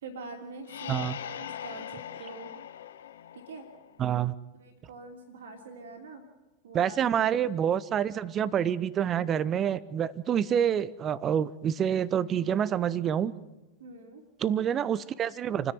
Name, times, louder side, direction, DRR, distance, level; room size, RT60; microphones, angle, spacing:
voice 1, 0.0-2.5 3.3-3.7 4.6-6.2 6.6-7.0 13.8-14.2, right 3 dB, 60° right, 3 dB, 3.0 m, -44 dB
sound 1, 0.6-4.2, left 10 dB, 65° left, 0.7 m, -41 dB
voice 2, 0.9-1.2 4.0-4.3 6.7-13.3 14.4-15.7, right 9 dB, 25° right, 19 dB, 0.8 m, -27 dB
28.5 x 10.5 x 9.2 m, 1.1 s
figure-of-eight pair, 90°, 0 cm